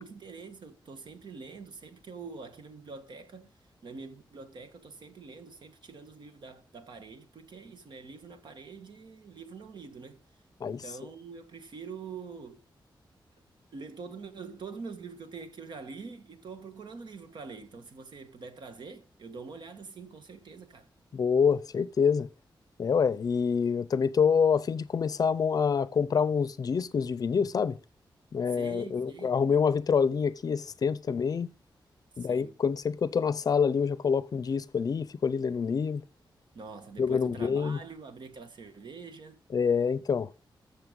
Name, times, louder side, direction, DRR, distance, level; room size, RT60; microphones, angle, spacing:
voice 1, 0.0-3.5 3.8-10.2 10.6-12.6 13.7-20.9 28.5-29.4 32.2-32.5 36.5-39.4, right 5 dB, 65° right, 1.6 m, -45 dB
voice 2, 21.1-22.3 22.8-27.8 28.3-31.5 32.2-36.0 37.0-37.8 39.5-40.3, left 6 dB, 50° left, 0.5 m, -26 dB
14.0 x 6.6 x 5.3 m
wide cardioid pair, 175°, 8 cm